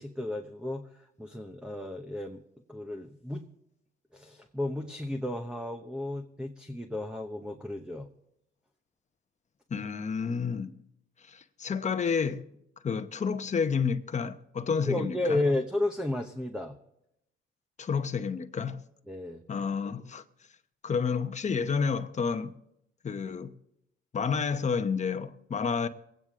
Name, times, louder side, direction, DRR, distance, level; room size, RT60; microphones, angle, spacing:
voice 1, 0.0-2.4 2.7-3.4 4.1-8.1 14.8-16.8 19.1-19.4, left 1 dB, 5° right, 0.9 m, -33 dB
voice 2, 9.7-10.8 11.2-12.5 12.8-15.4 17.8-18.8 19.5-20.2 20.8-22.6 23.0-23.5 24.1-25.9, left 6 dB, 35° left, 0.9 m, -30 dB
23.5 x 9.1 x 3.7 m
cardioid pair, 90°, 20 cm